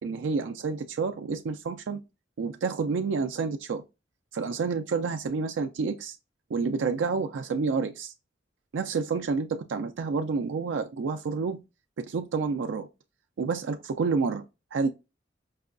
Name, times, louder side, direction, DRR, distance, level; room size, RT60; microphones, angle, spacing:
voice 1, 0.0-2.0 2.4-3.8 4.3-6.2 6.5-8.1 8.7-11.6 12.0-12.9 13.4-14.4 14.7-14.9, right 4 dB, 85° right, 0.4 m, -29 dB
4.7 x 2.2 x 2.5 m
head